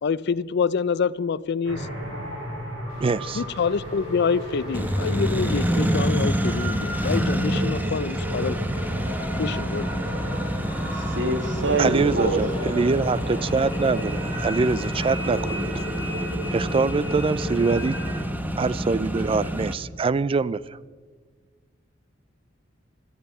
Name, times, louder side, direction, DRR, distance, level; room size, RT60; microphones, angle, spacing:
voice 1, 0.0-1.9 3.3-8.6 9.4-9.9, left 5 dB, 60° left, 20 dB, 0.4 m, -26 dB
sound 1, 1.6-18.2, equal, 90° right, 4.9 m, -33 dB
sound 2, 2.9-15.2, left 1 dB, 25° left, 4.8 m, -43 dB
voice 2, 3.0-3.4 7.8-8.0 11.8-15.9 16.5-18.0 18.6-20.8, right 4 dB, 30° right, 19 dB, 0.3 m, -24 dB
Accelerating revving vroom, 4.7-19.7, equal, 10° right, 0.9 m, -28 dB
voice 3, 10.9-12.4, right 2 dB, 65° right, 7 dB, 1.8 m, -25 dB
16.5 x 12.5 x 5.5 m, 1.5 s
head